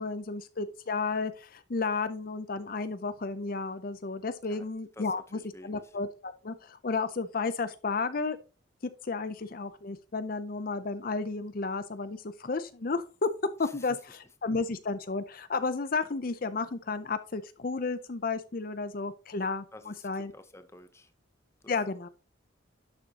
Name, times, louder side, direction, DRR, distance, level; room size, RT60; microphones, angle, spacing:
voice 1, 0.0-5.2 5.6-8.4 9.0-13.3 13.6-20.3 21.7-22.1, left 4 dB, 45° left, 0.6 m, -32 dB
voice 2, 4.9-6.0 13.6-14.0 19.7-21.1, left 1 dB, 15° left, 0.7 m, -51 dB
11.5 x 6.6 x 2.9 m
head